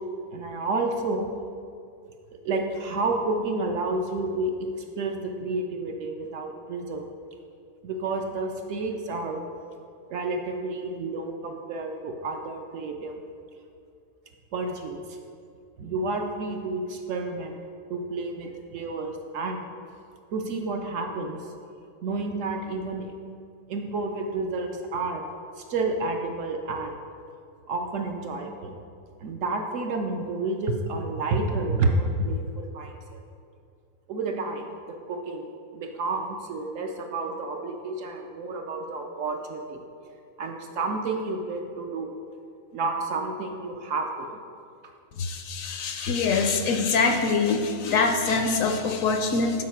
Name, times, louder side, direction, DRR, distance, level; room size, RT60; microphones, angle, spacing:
voice 1, 0.3-1.3 2.3-4.7 5.0-7.1 7.8-9.4 10.1-13.1 14.5-15.2 15.8-17.6 17.9-19.7 20.3-21.5 22.0-23.1 23.7-25.2 25.6-27.0 27.7-28.8 29.2-33.2 34.1-34.7 35.1-35.4 35.7-39.8 40.4-42.1 42.7-44.4, right 3 dB, 65° right, 3 dB, 0.8 m, -30 dB
voice 2, 45.2-49.6, left 4 dB, 70° left, 5 dB, 0.9 m, -24 dB
7.5 x 4.8 x 4.4 m, 2.5 s
omnidirectional pair, 1.6 m